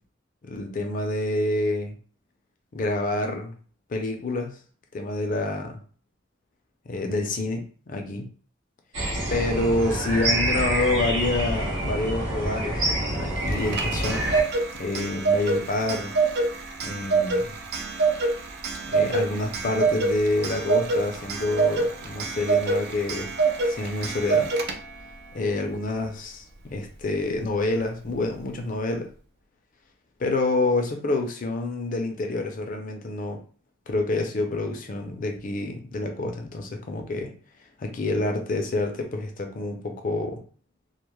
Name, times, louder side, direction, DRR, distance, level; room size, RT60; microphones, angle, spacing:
voice 1, 0.4-2.0 2.7-3.6 3.9-4.5 4.9-5.8 6.9-8.3 9.3-12.8 13.2-14.2 14.8-16.1 16.8-17.5 18.9-23.3 23.7-24.5 25.3-29.1 30.2-33.4 33.9-37.3 37.8-40.4, left 2 dB, 45° left, 4 dB, 0.5 m, -27 dB
sound 1, 8.9-14.4, right 1 dB, 75° right, 0.8 m, -26 dB
Clock, 13.5-25.1, right 4 dB, 60° right, 0.4 m, -26 dB
2.2 x 2.1 x 3.0 m, 0.40 s
head